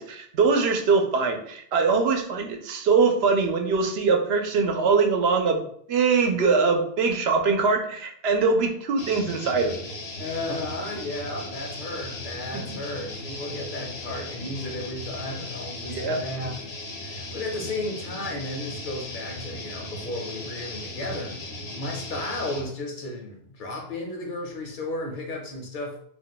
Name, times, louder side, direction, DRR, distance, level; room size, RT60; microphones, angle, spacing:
voice 1, 0.2-5.6 5.9-9.7 15.8-16.2, right 4 dB, 90° right, 3 dB, 0.8 m, -22 dB
sound 1, 9.0-22.7, left 2 dB, 85° left, 1.1 m, -37 dB
voice 2, 10.2-16.6 17.0-21.3 21.7-26.0, left 2 dB, 55° left, 1 dB, 0.8 m, -34 dB
2.5 x 2.2 x 3.9 m, 0.64 s
omnidirectional pair, 1.0 m